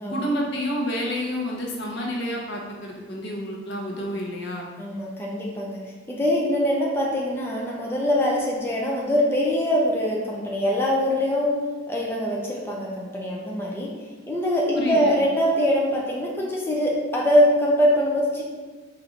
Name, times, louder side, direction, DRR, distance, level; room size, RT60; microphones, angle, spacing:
voice 1, 0.1-4.7 14.7-15.2, equal, 65° left, -2 dB, 0.9 m, -29 dB
voice 2, 4.8-5.8 6.1-11.6 11.9-13.9 14.3-18.4, equal, 10° left, -3 dB, 0.5 m, -23 dB
4.1 x 2.6 x 4.4 m, 1.3 s
head